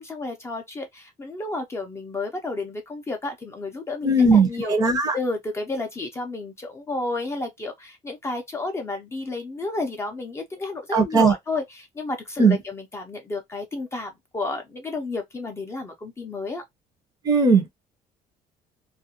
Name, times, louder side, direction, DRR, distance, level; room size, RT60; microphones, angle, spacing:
voice 1, 0.0-4.8 5.1-16.6, left 3 dB, 15° left, 0.5 m, -31 dB
voice 2, 4.0-5.1 10.9-11.3 12.4-12.6 17.2-17.7, right 3 dB, 25° right, 0.6 m, -18 dB
2.4 x 2.1 x 2.7 m
cardioid pair, 140°, 15 cm